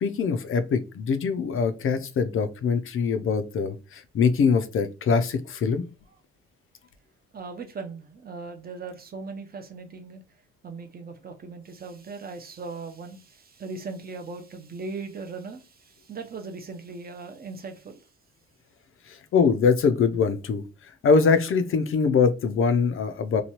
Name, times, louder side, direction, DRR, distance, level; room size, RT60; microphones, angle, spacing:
voice 1, 0.0-5.8 19.1-20.6 21.0-23.4, left 5 dB, 45° left, 10 dB, 0.5 m, -23 dB
voice 2, 7.3-10.2 10.6-18.0, right 4 dB, 30° right, 6 dB, 0.6 m, -39 dB
2.9 x 2.2 x 2.9 m, 0.32 s
cardioid pair, 90°, 30 cm